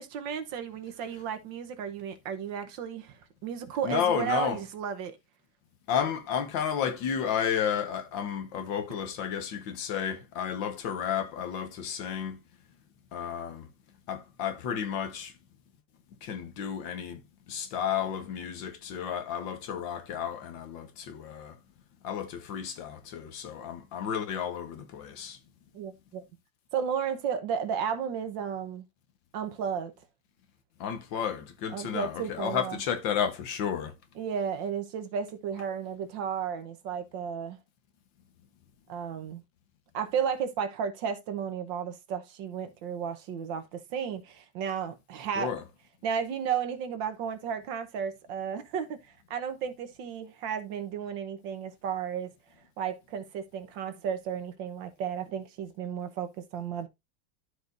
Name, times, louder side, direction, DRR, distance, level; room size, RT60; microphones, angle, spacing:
voice 1, 0.0-5.1 25.7-26.2 26.7-28.9 29.3-29.9 31.7-32.8 34.2-37.6 38.9-39.4 39.9-45.5 46.0-49.0 49.3-52.3 52.8-56.9, right 7 dB, 75° right, 1.7 m, -33 dB
voice 2, 3.8-4.6 5.9-12.4 13.1-13.7 14.1-15.3 16.2-21.6 22.0-25.4 30.8-33.9 45.4-45.6, left 8 dB, 75° left, 1.8 m, -32 dB
13.0 x 4.9 x 2.6 m
omnidirectional pair, 2.1 m